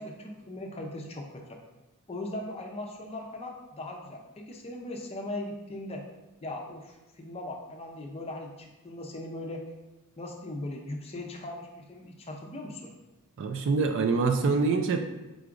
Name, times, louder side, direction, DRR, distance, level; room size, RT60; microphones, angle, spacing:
voice 1, 0.0-1.6 2.1-6.0 6.4-9.7 10.2-12.9, left 1 dB, 25° left, 1 dB, 0.5 m, -39 dB
voice 2, 13.4-15.0, right 4 dB, 55° right, 6 dB, 0.3 m, -25 dB
4.7 x 3.8 x 2.5 m, 1.0 s
head